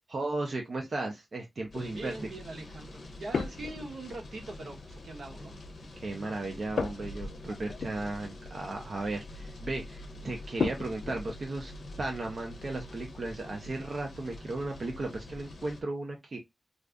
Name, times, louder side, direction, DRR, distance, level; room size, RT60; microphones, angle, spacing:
voice 1, 0.1-2.2 5.9-11.7 12.0-16.4, right 2 dB, 45° right, 0.7 m, -35 dB
sound 1, 1.6-2.0 3.3-4.2 6.8-8.3 8.6-8.8 10.6-11.4, left 5 dB, 90° left, 0.3 m, -35 dB
sound 2, 1.7-15.8, left 2 dB, 55° left, 0.8 m, -45 dB
voice 2, 1.9-5.5, right 2 dB, 80° right, 0.9 m, -42 dB
2.5 x 2.5 x 3.4 m
wide cardioid pair, 170°, 0 cm